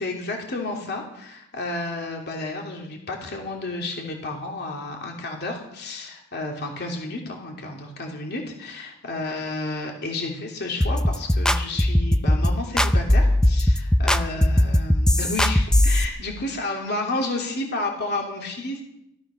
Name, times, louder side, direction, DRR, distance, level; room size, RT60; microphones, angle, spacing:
voice 1, 0.0-18.8, left 2 dB, 50° left, 1 dB, 2.9 m, -31 dB
sound 1, 10.8-16.0, left 1 dB, 5° left, 0.6 m, -19 dB
17.0 x 13.0 x 6.3 m, 0.82 s
head